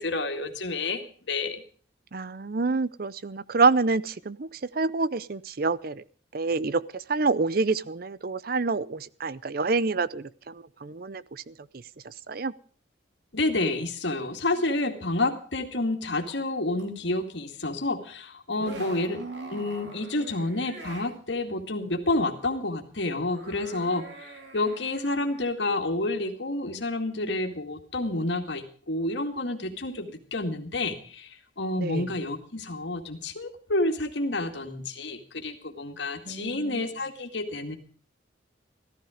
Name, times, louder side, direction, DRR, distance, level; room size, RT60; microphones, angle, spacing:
voice 1, 0.0-1.6 13.3-24.0 24.5-31.3 31.6-37.8, left 2 dB, 70° left, 6 dB, 2.2 m, -29 dB
voice 2, 2.1-4.5 4.7-6.0 6.3-6.8 7.1-11.5 12.0-12.5 19.2-19.6 31.8-32.1 36.3-36.8, right 4 dB, 50° right, 18 dB, 0.6 m, -27 dB
sound 1, 16.3-16.4 16.8-16.9 18.5-21.1 23.1-25.7, right 2 dB, 65° right, 4.2 m, -44 dB
14.5 x 14.0 x 5.1 m, 0.43 s
head